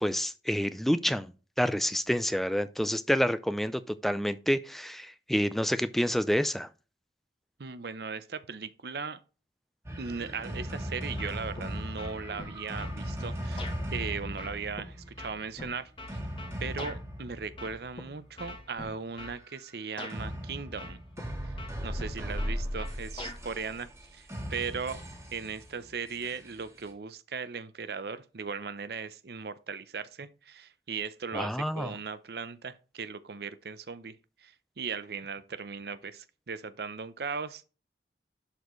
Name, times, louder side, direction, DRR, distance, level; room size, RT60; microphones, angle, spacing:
voice 1, 0.0-1.3 1.6-6.7 31.3-31.9, equal, ahead, 0.4 m, -28 dB
voice 2, 7.6-9.2 10.0-16.2 16.6-21.0 21.8-25.0 25.3-34.1 34.4-37.6, right 5 dB, 60° right, 0.6 m, -38 dB
sound 1, 9.8-18.2 20.1-26.9, equal, 15° right, 1.5 m, -38 dB
sound 2, 11.2-11.7 12.0-13.0 13.6-13.8 14.4-17.0 17.6-18.0 18.4-19.4 20.0-20.2 20.8-21.3 21.6-23.4, left 2 dB, 30° left, 1.4 m, -43 dB
11.5 x 4.2 x 3.1 m
head